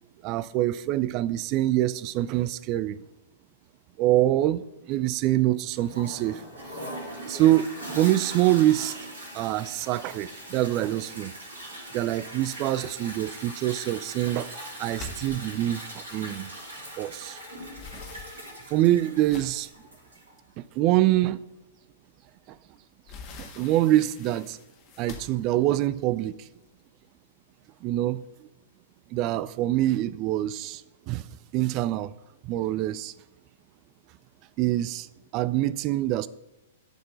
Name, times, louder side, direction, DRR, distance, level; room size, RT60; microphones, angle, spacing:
voice 1, 0.2-3.0 4.0-6.4 7.3-9.0 9.3-11.3 11.9-14.5 14.8-16.5 17.0-17.4 18.7-19.7 20.8-21.4 23.4-24.6 25.0-26.4 27.8-28.2 29.1-30.8 31.1-31.3 31.5-32.1 32.4-33.1 34.6-35.1 35.3-36.3, right 14 dB, 35° right, 0.3 m, -25 dB
Toilet flush, 5.7-20.3, right 1 dB, 70° right, 3.1 m, -41 dB
sound 1, 14.9-17.1 17.4-19.8 20.4-20.5 21.0-21.1 22.5-26.8, left 3 dB, 35° left, 1.6 m, -45 dB
11.5 x 4.4 x 6.7 m
figure-of-eight pair, 105°, 0 cm